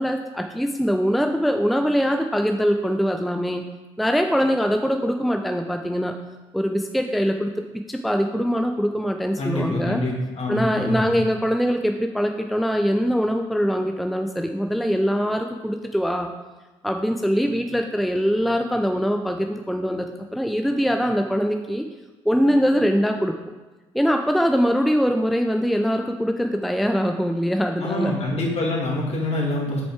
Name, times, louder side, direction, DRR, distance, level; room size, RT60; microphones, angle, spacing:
voice 1, 0.0-3.6 4.0-6.1 6.5-10.0 10.5-16.3 16.8-21.8 22.2-23.3 23.9-28.1, equal, ahead, 5 dB, 0.5 m, -22 dB
voice 2, 9.4-11.2 27.8-29.8, left 1 dB, 50° left, -2 dB, 2.3 m, -25 dB
6.7 x 5.2 x 4.8 m, 1.2 s
hypercardioid pair, 50°, 14 cm